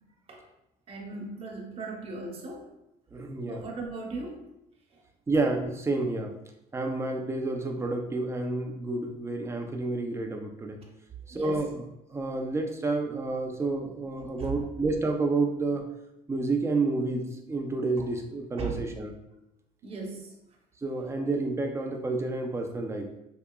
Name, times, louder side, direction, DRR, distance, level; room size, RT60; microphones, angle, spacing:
voice 1, 0.9-2.6 3.5-4.4 11.3-11.6 14.4-14.5 18.6-18.8 19.8-20.3, right 4 dB, 35° right, 0 dB, 0.9 m, -37 dB
voice 2, 3.1-3.6 5.3-6.3 6.7-10.8 11.3-11.8 12.1-15.9 16.3-19.1 20.8-23.1, right 3 dB, 15° right, 3 dB, 0.4 m, -29 dB
4.7 x 2.7 x 2.3 m, 0.86 s
cardioid pair, 130°, 17 cm